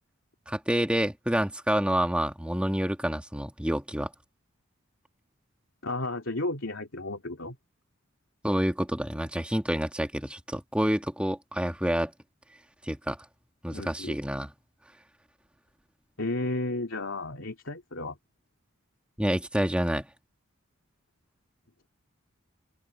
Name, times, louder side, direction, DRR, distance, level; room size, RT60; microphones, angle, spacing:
voice 1, 0.5-4.1 8.4-12.1 12.8-13.2 13.6-14.5 19.2-20.1, equal, 5° right, 1.7 m, -28 dB
voice 2, 5.8-7.6 13.7-14.2 16.2-18.2, left 2 dB, 65° left, 3.0 m, -33 dB
head